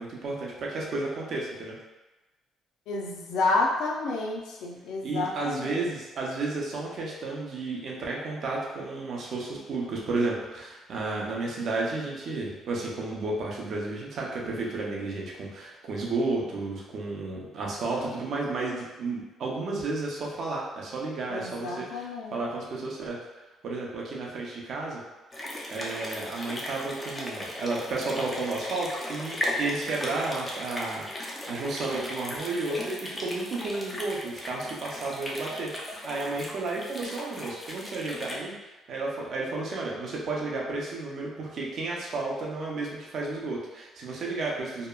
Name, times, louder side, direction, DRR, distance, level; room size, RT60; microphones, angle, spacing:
voice 1, 0.0-1.8 5.0-23.2 23.6-25.0 25.7-38.5 38.9-44.9, right 3 dB, 45° right, -3 dB, 0.5 m, -32 dB
voice 2, 2.9-5.9 21.3-22.4, left 3 dB, 80° left, -1 dB, 0.4 m, -30 dB
sound 1, 25.3-38.3, left 1 dB, 10° left, 0.3 m, -37 dB
2.8 x 2.2 x 2.2 m, 1.1 s
cardioid pair, 165°, 0 cm